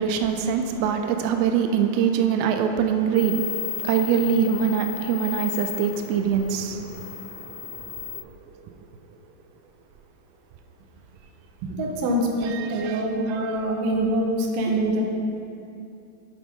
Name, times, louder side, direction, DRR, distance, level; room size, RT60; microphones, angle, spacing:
voice 1, 0.0-8.3 12.5-13.0 13.3-13.5, right 7 dB, 90° right, 6 dB, 2.7 m, -24 dB
sound 1, 3.1-8.2, left 8 dB, 65° left, 2.5 m, -34 dB
voice 2, 11.6-15.0, right 1 dB, 70° right, 0 dB, 2.3 m, -25 dB
9.8 x 6.0 x 3.6 m, 2.6 s
omnidirectional pair, 4.8 m